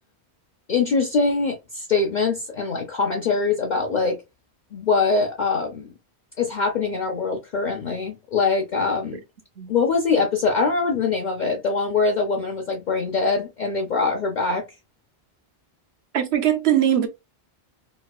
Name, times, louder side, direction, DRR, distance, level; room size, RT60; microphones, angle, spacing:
voice 1, 0.7-4.2 4.7-5.9 6.4-9.2 9.7-14.6, left 4 dB, 50° left, 0.7 m, -23 dB
voice 2, 16.1-17.1, right 10 dB, 70° right, 1.0 m, -20 dB
4.6 x 2.2 x 2.2 m
omnidirectional pair, 1.1 m